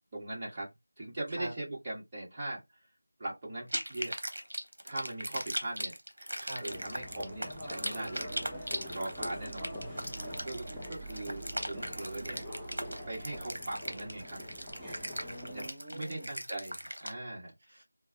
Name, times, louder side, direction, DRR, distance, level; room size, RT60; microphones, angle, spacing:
voice 1, 0.1-0.7 1.0-2.6 3.2-4.1 4.8-5.9 6.6-8.3 8.9-9.7 10.4-12.5 13.1-14.4 15.5-17.8, right 1 dB, 20° right, 1.4 m, -40 dB
sound 1, 3.7-17.1, right 1 dB, 65° right, 1.0 m, -39 dB
sound 2, 6.7-15.7, equal, 5° right, 0.6 m, -44 dB
voice 2, 9.3-10.6 15.2-16.3 17.7-17.8, right 1 dB, 40° right, 1.9 m, -46 dB
4.4 x 2.0 x 2.8 m
figure-of-eight pair, 165°, 0 cm